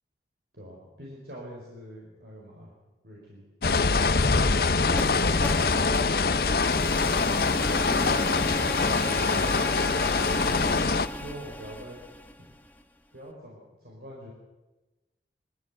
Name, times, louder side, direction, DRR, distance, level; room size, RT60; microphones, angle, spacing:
voice 1, 0.5-2.7 3.0-3.4 5.0-6.4 7.9-8.2 9.1-9.7 10.1-12.0 12.4-12.5 13.1-14.3, equal, 65° right, -3 dB, 4.5 m, -44 dB
sound 1, 3.6-11.1, left 4 dB, 60° left, 0.7 m, -24 dB
sound 2, 4.9-12.8, left 1 dB, 10° left, 1.0 m, -34 dB
22.0 x 14.5 x 8.2 m, 1.1 s
head